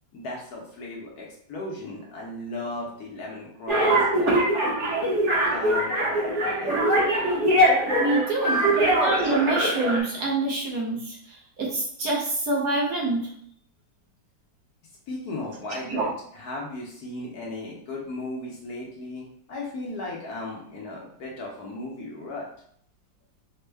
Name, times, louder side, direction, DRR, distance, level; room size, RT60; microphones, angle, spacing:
voice 1, 0.1-4.5 4.9-5.1 5.4-6.8 8.4-8.6 15.1-22.5, left 2 dB, 65° left, -2 dB, 1.1 m, -36 dB
sound 1, 3.7-10.0, right 1 dB, 45° right, 1.1 m, -22 dB
voice 2, 8.0-8.6 9.0-13.3 15.9-16.0, right 2 dB, 65° right, -2 dB, 1.2 m, -26 dB
4.3 x 2.1 x 3.3 m, 0.64 s
omnidirectional pair, 2.0 m